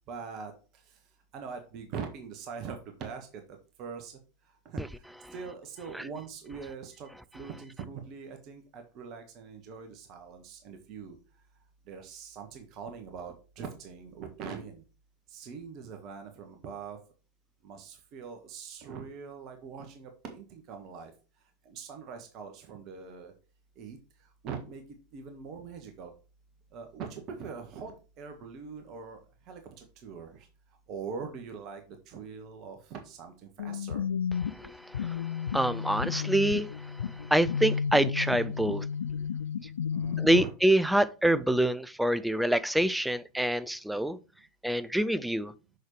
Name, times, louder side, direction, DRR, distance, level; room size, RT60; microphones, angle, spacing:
voice 1, 0.1-0.5 1.3-3.3 3.8-4.2 4.6-4.8 5.3-7.1 7.3-11.1 11.9-14.8 15.3-17.0 17.6-21.1 21.6-23.3 23.8-24.0 24.4-24.8 25.1-26.1 26.7-29.2 29.5-30.5 30.9-34.0 39.9-40.5, right 6 dB, 40° right, 1.4 m, -42 dB
sound 1, 33.6-40.4, left 7 dB, 70° left, 0.3 m, -32 dB
voice 2, 34.5-38.8 40.2-44.2 44.6-45.5, right 1 dB, 5° right, 0.4 m, -26 dB
6.5 x 6.3 x 3.2 m
figure-of-eight pair, 85°, 0 cm